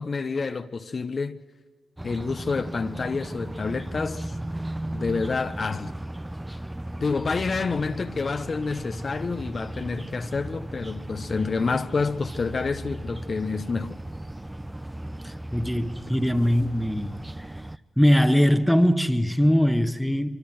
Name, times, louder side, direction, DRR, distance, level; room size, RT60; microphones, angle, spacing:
voice 1, 0.0-1.4 2.0-4.3 4.9-5.9 7.0-14.0, left 4 dB, 50° left, 1.0 m, -28 dB
sound 1, 2.0-17.8, right 1 dB, 15° right, 0.8 m, -36 dB
voice 2, 15.2-17.2 18.0-20.4, equal, 5° left, 1.5 m, -21 dB
25.0 x 24.5 x 6.4 m
supercardioid pair, 45°, 0 cm